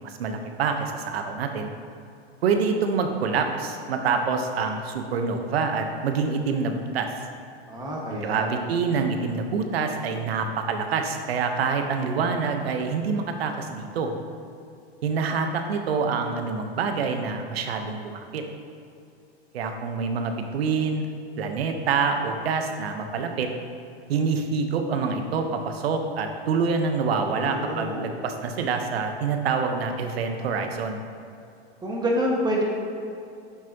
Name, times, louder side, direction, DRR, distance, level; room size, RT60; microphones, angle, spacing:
voice 1, 0.0-1.7 2.4-7.1 8.1-14.1 15.0-18.4 19.5-21.1 21.4-23.5 24.1-31.0, right 5 dB, 65° right, 5 dB, 1.2 m, -26 dB
voice 2, 7.7-8.5 27.3-28.1 31.8-32.6, equal, 15° right, -2 dB, 1.8 m, -27 dB
10.5 x 7.6 x 3.0 m, 2.5 s
hypercardioid pair, 120°, 32 cm